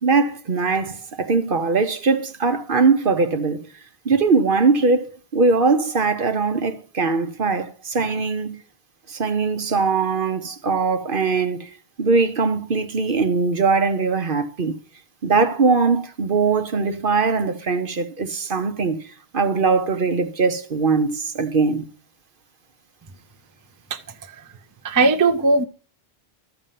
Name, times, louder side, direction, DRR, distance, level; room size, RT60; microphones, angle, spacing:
voice 1, 0.0-3.7 4.0-8.6 9.1-11.7 12.0-14.8 15.2-19.0 19.3-21.9, right 4 dB, 55° right, 1.1 m, -21 dB
voice 2, 24.8-25.6, right 3 dB, 20° right, 0.7 m, -18 dB
13.0 x 5.5 x 7.5 m
omnidirectional pair, 1.1 m